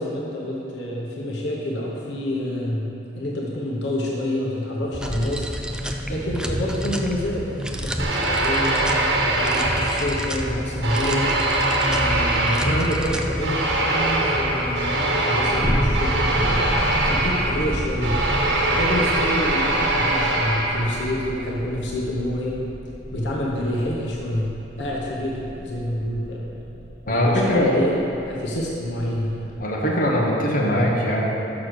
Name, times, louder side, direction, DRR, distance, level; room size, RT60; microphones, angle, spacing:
voice 1, 0.0-2.9 3.2-5.5 6.1-8.9 9.2-11.3 11.8-16.6 17.0-18.1 18.6-22.6 23.1-24.5 24.8-26.5 27.1-27.9 28.2-29.5, left 1 dB, 80° left, -3 dB, 1.0 m, -27 dB
sound 1, 4.9-19.3, equal, 5° right, 0.4 m, -30 dB
sound 2, 8.0-10.4 10.8-21.1, right 2 dB, 85° right, 1.2 m, -23 dB
sound 3, 10.3-29.6, equal, 20° right, 0.8 m, -33 dB
voice 2, 27.1-27.7 29.6-31.2, left 1 dB, 50° left, -4 dB, 1.3 m, -21 dB
6.3 x 6.1 x 6.4 m, 3.0 s
head